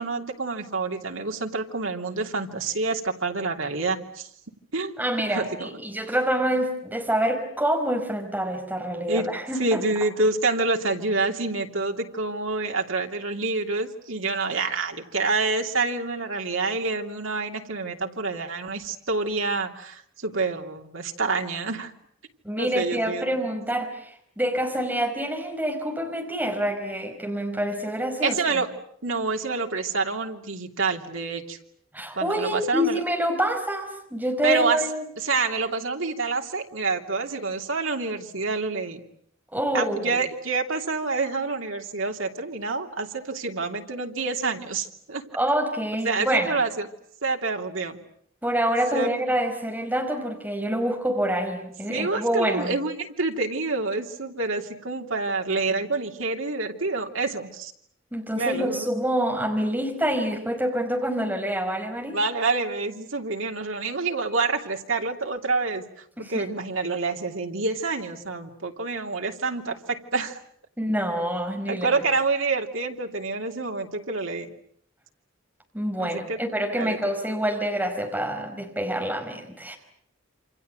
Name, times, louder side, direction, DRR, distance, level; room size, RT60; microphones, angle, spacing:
voice 1, 0.0-4.3 4.7-4.9 5.3-5.8 9.1-9.3 9.6-21.9 22.6-23.3 28.2-28.7 29.0-31.6 32.2-33.0 34.4-34.8 35.2-39.0 39.7-45.2 46.0-46.9 47.2-48.0 48.9-49.1 51.9-57.7 58.3-58.9 62.1-65.8 66.2-70.4 71.7-74.5 76.0-76.4 76.8-77.0, right 3 dB, 80° right, 3 dB, 3.0 m, -27 dB
voice 2, 5.0-9.8 22.4-28.4 31.9-35.0 39.5-40.2 45.3-46.6 48.4-52.7 58.1-62.2 66.2-66.5 70.8-71.9 75.7-79.8, equal, 10° right, 3 dB, 5.0 m, -26 dB
28.5 x 26.5 x 7.9 m, 0.68 s
head